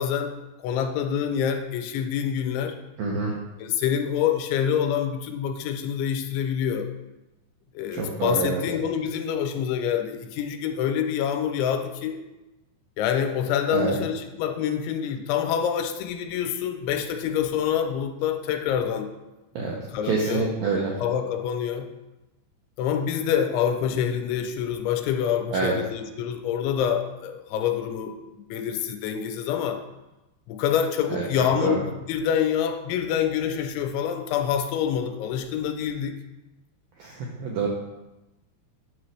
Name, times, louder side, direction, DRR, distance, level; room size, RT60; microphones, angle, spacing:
voice 1, 0.0-2.8 3.6-6.9 7.8-12.2 13.0-19.1 19.9-20.5 21.0-21.9 22.8-28.2 28.5-29.8 30.5-36.1, left 8 dB, 85° left, 6 dB, 3.0 m, -26 dB
voice 2, 3.0-3.3 7.9-8.6 13.7-14.0 19.6-19.8 20.0-20.9 25.5-25.7 31.1-31.8 37.0-37.7, right 4 dB, 85° right, -3 dB, 2.0 m, -26 dB
9.6 x 6.1 x 3.3 m, 1.0 s
omnidirectional pair, 5.3 m